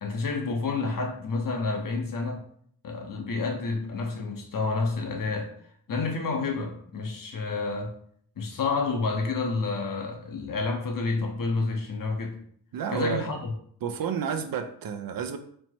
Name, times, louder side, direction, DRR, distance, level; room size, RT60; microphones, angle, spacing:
voice 1, 0.0-2.4 2.8-5.5 5.9-7.9 8.4-12.4 12.9-13.5, left 3 dB, 50° left, 1.0 m, -29 dB
voice 2, 12.7-13.3 13.8-15.4, right 7 dB, 55° right, 0.6 m, -30 dB
4.3 x 2.1 x 4.4 m
cardioid pair, 65°, 42 cm